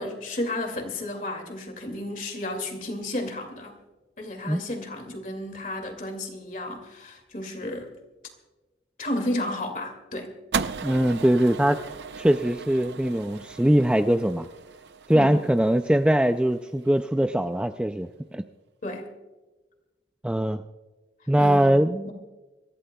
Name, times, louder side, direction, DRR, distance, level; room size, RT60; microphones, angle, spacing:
voice 1, 0.0-3.8 4.2-7.9 9.0-10.3 15.1-15.4 18.8-19.1 21.4-22.1, left 1 dB, 45° left, 5 dB, 2.3 m, -32 dB
sound 1, 10.5-16.9, right 5 dB, 75° right, 0.6 m, -36 dB
voice 2, 10.8-11.8 12.2-14.5 15.1-18.4 20.2-20.6 21.3-22.1, right 1 dB, 5° right, 8 dB, 0.3 m, -22 dB
25.5 x 14.5 x 2.3 m, 1.2 s
head